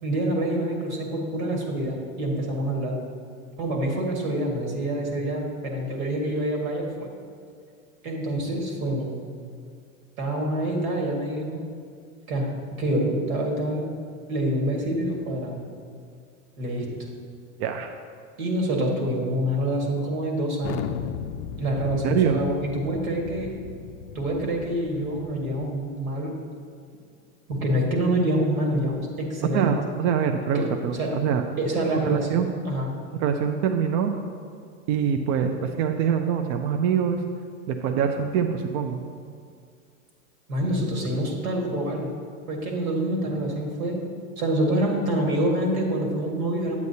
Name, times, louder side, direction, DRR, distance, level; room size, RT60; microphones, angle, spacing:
voice 1, 0.0-3.0 3.6-7.1 8.0-9.1 10.2-11.6 12.3-13.8 14.3-15.6 16.6-16.9 18.4-21.0 21.6-23.5 24.1-26.3 27.5-29.7 30.5-30.7 31.0-31.1 31.6-32.3 32.7-32.9 40.5-42.1 42.5-44.0 44.4-46.8, right 1 dB, 80° right, 0 dB, 1.8 m, -26 dB
voice 2, 17.6-17.9 22.0-22.4 29.5-31.4 32.0-32.5 33.2-34.1 34.9-37.2 37.7-39.0, right 7 dB, 50° right, 5 dB, 0.5 m, -24 dB
Thunder, 20.6-25.8, left 8 dB, 50° left, 0.4 m, -36 dB
8.3 x 8.2 x 2.8 m, 2.2 s
hypercardioid pair, 100°, 41 cm